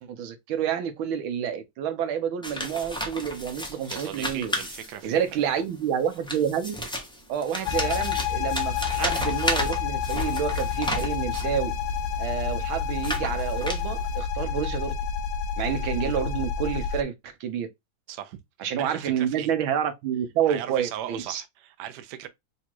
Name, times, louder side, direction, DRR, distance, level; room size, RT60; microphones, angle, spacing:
voice 1, 0.0-4.5 5.0-6.7 7.3-11.7 12.2-14.9 15.6-17.7 18.6-21.4, right 8 dB, 85° right, 1.6 m, -28 dB
sound 1, 2.4-5.3 6.1-11.6 12.2-14.2, equal, 5° left, 0.3 m, -33 dB
voice 2, 3.9-5.2 18.1-18.4 18.8-19.5 20.5-22.3, right 11 dB, 65° right, 1.1 m, -38 dB
sound 2, 7.7-17.0, left 7 dB, 75° left, 1.3 m, -29 dB
4.0 x 2.4 x 4.4 m
omnidirectional pair, 2.2 m